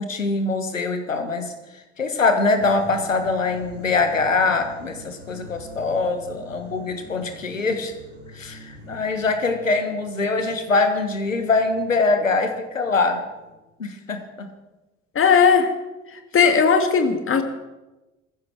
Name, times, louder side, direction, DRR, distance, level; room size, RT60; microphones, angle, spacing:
voice 1, 0.0-1.5 2.0-7.9 8.3-13.2 13.8-14.5, left 3 dB, 85° left, 7 dB, 1.5 m, -23 dB
sound 1, 2.6-13.5, right 1 dB, 30° right, 6.7 m, -44 dB
voice 2, 15.2-15.7 16.1-17.4, left 6 dB, 35° left, 6 dB, 2.2 m, -17 dB
19.5 x 15.0 x 4.7 m, 1.1 s
figure-of-eight pair, 55°, 38 cm